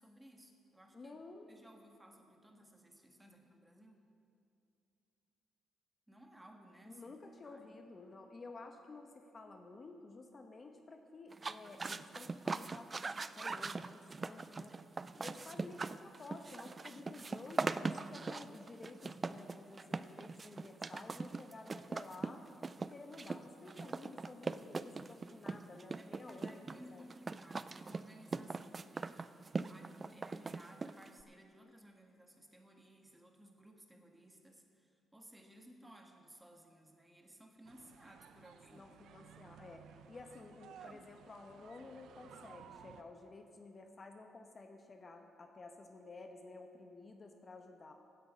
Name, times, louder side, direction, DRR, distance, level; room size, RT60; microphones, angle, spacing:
voice 1, 0.0-1.2 1.5-4.1 6.1-7.2 7.4-7.8 26.0-29.3 29.7-38.9 40.0-41.2, equal, 10° right, 3 dB, 1.6 m, -59 dB
voice 2, 0.9-1.5 6.9-14.7 15.2-22.4 22.8-27.0 38.7-39.8 40.1-47.9, left 3 dB, 35° left, 4 dB, 1.0 m, -53 dB
sound 1, 11.3-31.2, right 4 dB, 30° right, 0.4 m, -41 dB
sound 2, 37.6-43.0, right 8 dB, 75° right, 0.6 m, -57 dB
16.0 x 9.2 x 5.1 m, 2.6 s
cardioid pair, 90°, 0 cm